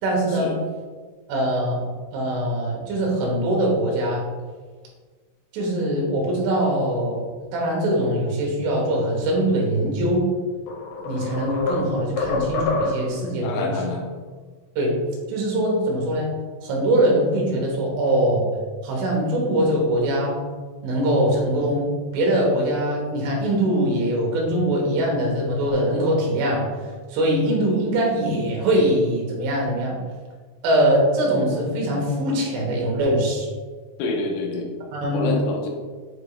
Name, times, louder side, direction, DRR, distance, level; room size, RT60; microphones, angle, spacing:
voice 1, 0.0-0.5 1.3-1.8 2.1-4.3 5.5-7.2 7.5-10.2 11.0-13.8 14.8-15.0 15.3-16.3 16.6-18.5 18.8-20.4 20.8-26.7 27.1-30.0 30.6-33.5 34.9-35.3, right 1 dB, 85° right, -1 dB, 3.9 m, -22 dB
sound 1, 10.1-10.2 10.7-13.2, left 2 dB, 70° left, 3.1 m, -26 dB
voice 2, 13.4-14.1 34.0-34.7 35.1-35.7, left 3 dB, 90° left, 1 dB, 3.5 m, -27 dB
9.1 x 5.0 x 2.4 m, 1.4 s
omnidirectional pair, 5.5 m